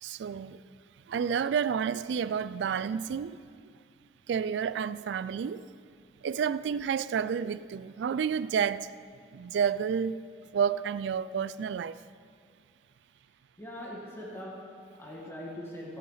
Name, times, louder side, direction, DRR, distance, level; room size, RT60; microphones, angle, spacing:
voice 1, 0.0-0.6 1.1-3.4 4.3-5.6 6.2-8.9 9.3-10.2 10.5-11.9, right 7 dB, 70° right, 0.3 m, -30 dB
voice 2, 13.6-16.0, equal, 15° left, 1.9 m, -42 dB
16.5 x 5.6 x 5.6 m
head